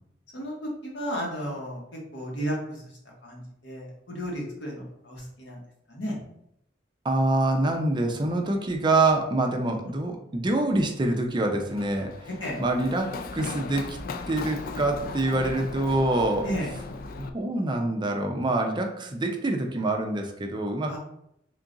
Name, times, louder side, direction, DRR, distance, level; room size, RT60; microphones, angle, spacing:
voice 1, 0.3-2.9 3.2-5.6 5.9-6.2 12.4-12.6 16.4-16.7 20.8-21.0, equal, 75° left, -2 dB, 1.3 m, -33 dB
voice 2, 7.0-12.3 12.6-14.0 14.3-16.5 17.2-21.0, right 2 dB, 25° right, 3 dB, 0.5 m, -26 dB
Run, 11.7-17.3, left 3 dB, 50° left, 0.3 m, -37 dB
3.8 x 2.4 x 3.8 m, 0.76 s
head